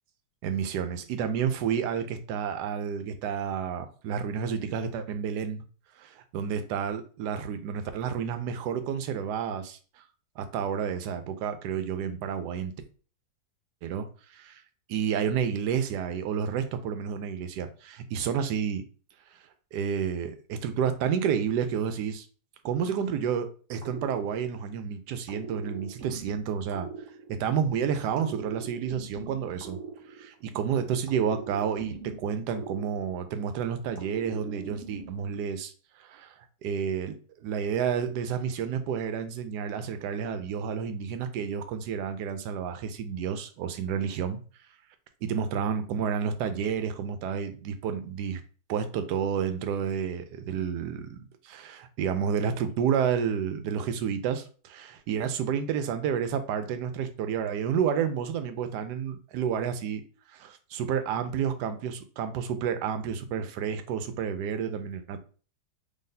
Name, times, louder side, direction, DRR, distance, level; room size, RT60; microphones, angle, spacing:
voice 1, 0.4-5.6 6.0-9.8 10.4-12.7 13.8-14.1 14.3-14.6 14.9-18.8 19.7-22.3 22.6-26.9 27.4-29.8 30.5-35.7 36.0-36.3 36.6-44.4 45.2-48.4 48.7-51.2 51.4-60.0 60.3-65.2, right 7 dB, 80° right, 1.2 m, -30 dB
sound 1, 23.8-24.8 25.3-27.7 28.2-30.6 31.1-33.5 33.9-35.4, right 4 dB, 50° right, 1.1 m, -42 dB
3.9 x 3.4 x 2.6 m
omnidirectional pair, 1.8 m